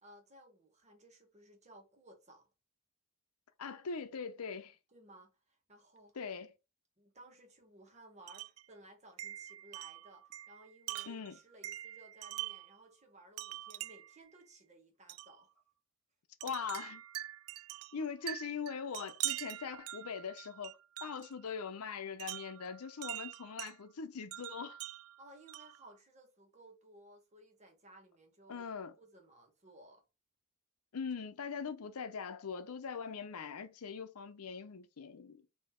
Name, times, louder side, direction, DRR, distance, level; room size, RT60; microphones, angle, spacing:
voice 1, 0.0-2.5 4.9-6.2 7.0-15.5 25.2-28.7 29.0-30.0, right 1 dB, 30° right, 1.4 m, -59 dB
voice 2, 3.6-4.8 6.1-6.5 11.1-11.4 16.4-17.0 17.9-24.8 28.5-28.9 30.9-35.4, left 6 dB, 85° left, 0.6 m, -41 dB
Wind chime, 8.3-8.6 9.2-12.8 13.4-14.2 15.1-15.3 16.4-21.3 22.2-23.7 24.3-25.8, right 15 dB, 70° right, 0.3 m, -44 dB
4.3 x 2.8 x 4.3 m
head